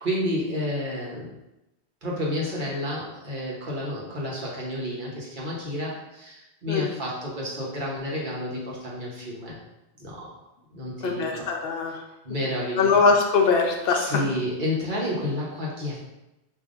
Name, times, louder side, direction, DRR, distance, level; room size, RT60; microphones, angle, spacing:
voice 1, 0.0-1.3 2.0-9.6 10.0-10.3 10.7-11.5 12.2-13.0 13.9-16.0, left 1 dB, 50° right, -4 dB, 1.1 m, -30 dB
voice 2, 11.0-12.0 12.8-14.2, left 4 dB, 70° left, 1 dB, 0.9 m, -22 dB
5.2 x 2.7 x 2.5 m, 0.91 s
omnidirectional pair, 1.1 m